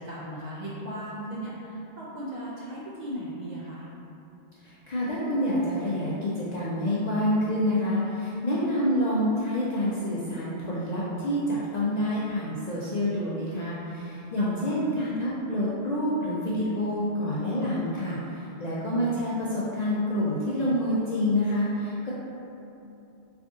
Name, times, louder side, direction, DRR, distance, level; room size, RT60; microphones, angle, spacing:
voice 1, 0.0-3.9 14.4-14.7, right 1 dB, 55° right, -7 dB, 0.5 m, -37 dB
voice 2, 4.6-22.1, left 1 dB, 55° left, -8 dB, 0.5 m, -27 dB
3.3 x 2.6 x 3.5 m, 2.8 s
omnidirectional pair, 1.1 m